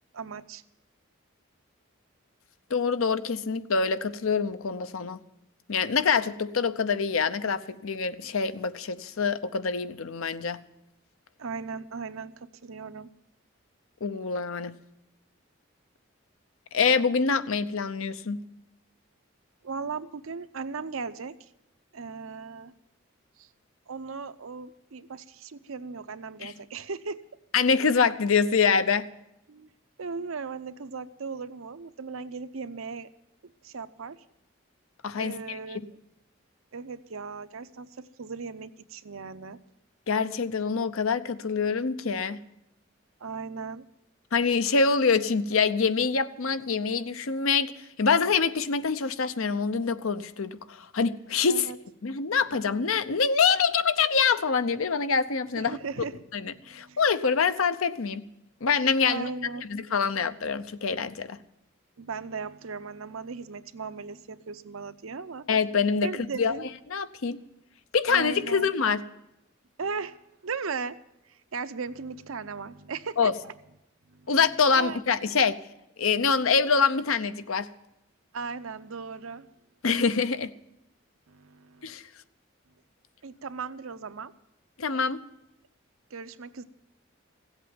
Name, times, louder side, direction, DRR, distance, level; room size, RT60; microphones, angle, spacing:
voice 1, 0.1-0.6 11.4-13.1 19.6-21.5 21.9-22.7 23.4-23.5 23.9-27.2 29.5-29.7 30.0-33.1 33.6-34.2 35.2-35.8 36.7-39.6 43.2-43.8 51.5-51.8 55.6-56.2 56.5-57.0 59.1-59.7 62.0-65.5 66.0-66.7 68.1-68.7 69.8-70.2 70.4-71.0 71.3-73.5 74.1-74.3 74.7-75.0 78.3-79.5 81.3-81.9 83.2-84.3 86.1-86.6, right 5 dB, 80° right, 12 dB, 0.7 m, -37 dB
voice 2, 2.7-5.2 5.7-10.6 14.0-14.7 16.7-18.4 26.4-26.5 27.5-29.1 35.0-35.6 40.1-42.4 44.3-47.7 48.0-51.7 52.0-55.8 56.3-58.2 58.6-59.3 59.7-61.4 65.5-66.1 66.4-66.5 66.9-67.4 67.9-69.0 73.2-73.3 74.3-75.6 76.0-77.7 79.8-80.5 81.8-82.0 84.8-85.2, left 5 dB, 80° left, 12 dB, 0.7 m, -25 dB
16.0 x 8.2 x 9.1 m, 0.86 s
head